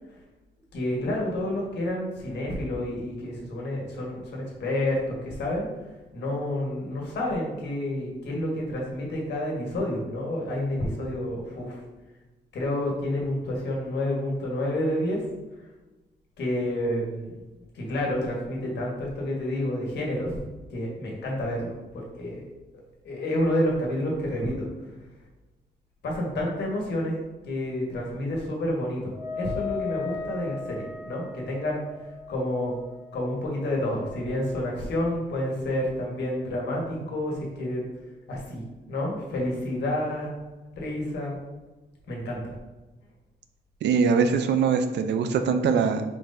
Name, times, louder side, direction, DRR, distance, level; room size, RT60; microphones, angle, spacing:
voice 1, 0.7-5.7 6.1-11.8 12.5-15.2 16.4-17.4 17.7-22.5 23.0-24.7 26.0-27.2 27.4-31.8 32.3-32.8 33.1-37.9 38.3-38.6 38.9-40.3 40.8-41.4 42.1-42.4, left 1 dB, 80° left, -2 dB, 1.4 m, -29 dB
Wind instrument woodwind instrument, 29.1-34.8, left 5 dB, 15° right, 0.7 m, -38 dB
voice 2, 43.8-46.0, right 6 dB, 85° right, 8 dB, 0.4 m, -22 dB
4.5 x 4.0 x 2.6 m, 1.1 s
cardioid pair, 110°, 17 cm